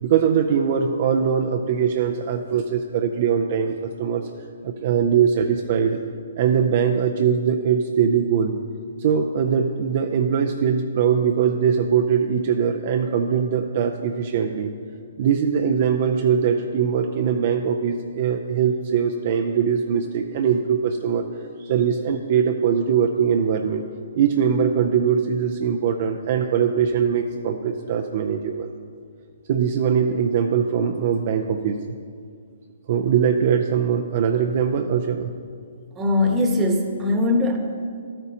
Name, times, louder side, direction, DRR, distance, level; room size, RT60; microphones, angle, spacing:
voice 1, 0.0-4.3 4.6-6.0 6.4-8.6 9.0-14.7 15.2-21.3 21.6-23.8 24.1-28.7 29.5-31.8 32.9-35.3, right 7 dB, 50° right, 5 dB, 0.5 m, -21 dB
voice 2, 36.0-37.6, left 2 dB, 20° right, 3 dB, 1.1 m, -20 dB
12.5 x 8.7 x 2.8 m, 2.2 s
hypercardioid pair, 135°, 0 cm